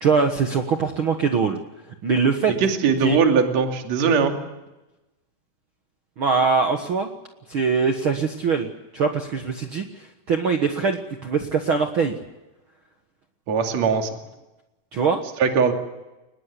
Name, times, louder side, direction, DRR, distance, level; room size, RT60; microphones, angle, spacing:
voice 1, 0.0-1.6 2.0-2.5 3.0-3.2 6.2-7.1 7.5-8.7 8.9-12.1 14.9-15.2, right 5 dB, 85° right, 5 dB, 1.1 m, -22 dB
voice 2, 2.6-4.4 13.5-14.1 15.4-15.7, right 6 dB, 45° right, 4 dB, 3.4 m, -20 dB
24.0 x 20.5 x 8.4 m, 1.0 s
omnidirectional pair, 4.7 m